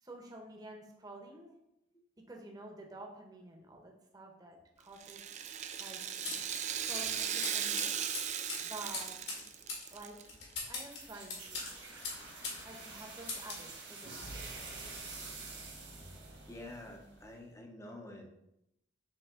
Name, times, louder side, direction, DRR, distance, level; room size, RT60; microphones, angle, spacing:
voice 1, 0.0-1.6 2.3-5.2 5.8-6.4 6.8-7.9 8.6-9.2 9.9-10.2 10.7-11.7 12.6-14.3, right 1 dB, 20° right, 2 dB, 0.9 m, -50 dB
Rattle (instrument), 5.0-10.2 10.5-10.6 11.5-11.6, right 9 dB, 40° right, 0.4 m, -37 dB
sound 1, 6.2-12.6 12.9-13.7, left 3 dB, 65° left, 2.0 m, -42 dB
sound 2, 10.8-17.4, right 3 dB, 70° right, 1.9 m, -47 dB
voice 2, 16.4-18.3, left 1 dB, 15° left, 2 dB, 0.7 m, -48 dB
7.3 x 3.4 x 3.7 m, 0.82 s
head